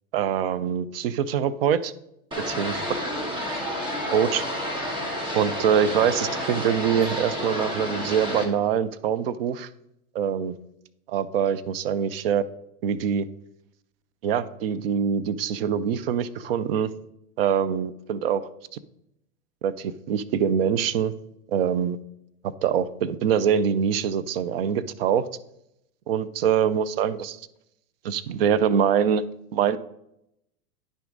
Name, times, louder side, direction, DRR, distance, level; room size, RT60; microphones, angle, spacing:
voice 1, 0.1-1.9 2.5-2.8 4.1-4.4 5.3-9.7 10.1-10.5 11.1-12.4 12.8-13.3 14.2-16.9 17.4-18.5 19.6-21.1 21.5-22.0 22.6-25.2 26.1-27.4 28.0-29.2 29.5-29.8, right 8 dB, 45° right, 15 dB, 0.5 m, -24 dB
sound 1, 2.3-8.5, equal, 10° right, 1.2 m, -30 dB
10.0 x 6.0 x 3.9 m, 0.80 s
hypercardioid pair, 145°, 44 cm